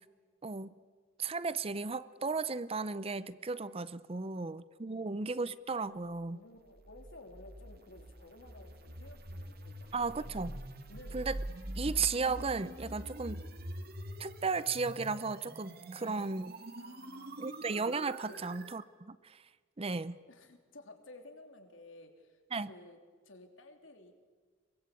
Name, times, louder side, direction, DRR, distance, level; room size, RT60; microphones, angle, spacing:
voice 1, 0.4-0.7 1.2-6.4 9.9-10.6 11.1-11.4 11.8-13.4 14.2-16.6 17.4-19.4 19.8-20.2 22.5-22.7, right 4 dB, 30° right, 16 dB, 0.6 m, -35 dB
voice 2, 4.1-5.1 6.3-10.4 10.9-11.3 12.8-13.1 16.8-17.5 18.3-18.5 20.3-23.0 23.2-24.1, left 2 dB, 75° left, 5 dB, 3.2 m, -55 dB
sound 1, 6.6-18.8, right 1 dB, 50° right, 2.3 m, -45 dB
24.0 x 23.0 x 8.4 m, 1.5 s
head